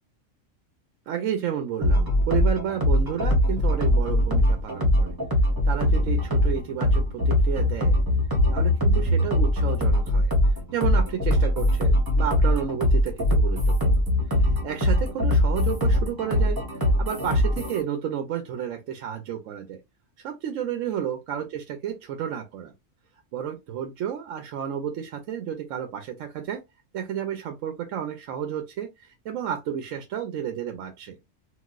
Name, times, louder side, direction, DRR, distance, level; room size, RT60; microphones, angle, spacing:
voice 1, 1.1-5.2 5.6-8.0 8.5-14.0 14.3-19.8 20.2-22.7 23.3-26.6 26.9-31.2, right 9 dB, 75° right, 0.9 m, -31 dB
sound 1, 1.8-17.8, left 1 dB, 20° right, 0.9 m, -21 dB
4.0 x 2.4 x 2.4 m
omnidirectional pair, 1.4 m